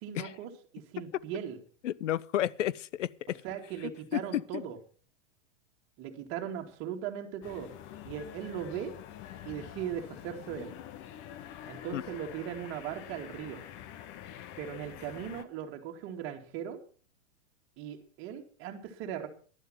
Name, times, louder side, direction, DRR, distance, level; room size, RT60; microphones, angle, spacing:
voice 1, 0.0-1.6 3.4-4.8 6.0-7.7 8.1-9.0 9.4-10.7 11.6-13.6 14.6-16.8 17.8-19.3, right 9 dB, 35° right, 2.3 m, -38 dB
voice 2, 1.8-3.4 4.1-4.6 11.9-12.0, left 12 dB, 80° left, 0.7 m, -32 dB
sound 1, 7.4-15.5, left 11 dB, 30° left, 1.0 m, -46 dB
12.0 x 11.0 x 5.9 m
hypercardioid pair, 140°, 36 cm